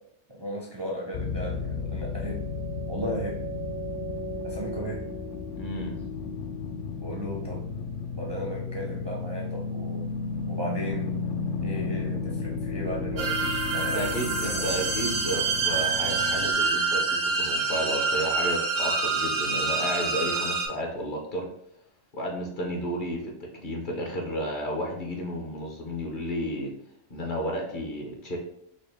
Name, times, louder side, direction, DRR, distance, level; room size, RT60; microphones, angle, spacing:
voice 1, 0.3-2.4 2.9-3.4 4.4-5.0 7.0-7.7 8.1-10.1 10.5-11.2 11.6-14.8, right 1 dB, 35° right, -3 dB, 0.4 m, -35 dB
sound 1, 1.1-16.5, left 4 dB, 80° left, 0.9 m, -33 dB
voice 2, 5.6-6.0 13.9-21.5 22.1-26.7 27.1-28.4, equal, 50° left, 0 dB, 0.8 m, -32 dB
sound 2, 13.2-20.7, right 4 dB, 90° right, 1.2 m, -27 dB
5.2 x 2.1 x 3.3 m, 0.74 s
omnidirectional pair, 1.2 m